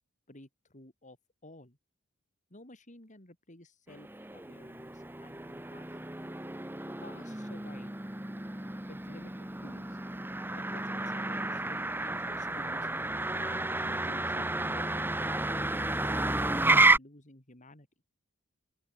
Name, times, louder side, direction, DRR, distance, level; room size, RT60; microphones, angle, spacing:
voice 1, 0.3-1.2 1.4-1.8 2.5-6.0 7.0-7.9 8.9-10.0 10.6-12.9 13.4-17.9, left 1 dB, 40° left, 4.9 m, -52 dB
Motor vehicle (road), 3.9-17.0, right 2 dB, 10° right, 1.2 m, -31 dB
open air
head